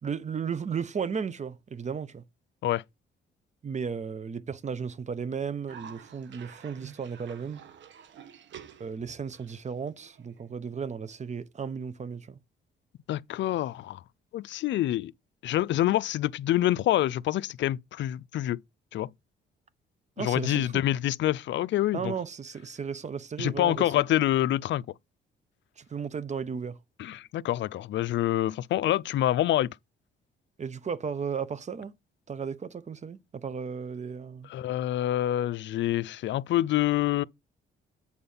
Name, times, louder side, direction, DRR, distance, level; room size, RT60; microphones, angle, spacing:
voice 1, 0.0-2.2 3.6-7.6 8.8-12.4 20.2-20.8 21.9-23.9 25.8-26.8 30.6-31.9 32.3-34.5, right 6 dB, 35° right, 1.0 m, -34 dB
Cough, 5.7-10.7, right 8 dB, 70° right, 1.3 m, -50 dB
voice 2, 13.1-14.0 14.3-15.1 15.4-18.6 18.9-19.1 20.2-22.1 23.4-24.8 27.0-29.7 34.5-37.2, left 13 dB, 70° left, 0.5 m, -26 dB
8.7 x 4.2 x 5.6 m
cardioid pair, 90°, 20 cm